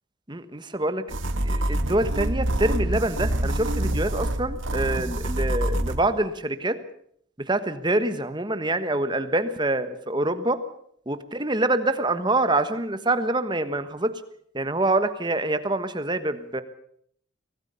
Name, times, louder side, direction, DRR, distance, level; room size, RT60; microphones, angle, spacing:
voice 1, 0.3-1.0 1.4-6.8 7.4-10.6 11.1-14.1 14.5-16.6, right 2 dB, 20° right, 11 dB, 1.3 m, -25 dB
sound 1, 1.1-6.0, right 1 dB, 70° right, 1.9 m, -26 dB
24.5 x 17.5 x 6.9 m, 0.66 s
head